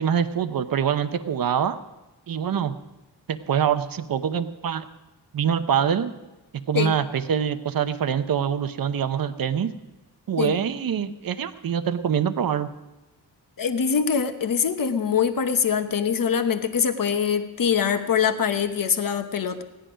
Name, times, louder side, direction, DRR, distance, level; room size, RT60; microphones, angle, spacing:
voice 1, 0.0-1.8 2.3-2.7 3.3-4.9 5.3-6.1 6.7-9.7 10.3-12.7, right 8 dB, 55° right, 11 dB, 0.8 m, -24 dB
voice 2, 13.6-19.6, left 7 dB, 55° left, 8 dB, 1.1 m, -23 dB
16.5 x 10.5 x 5.1 m, 1.1 s
wide cardioid pair, 90°, 41 cm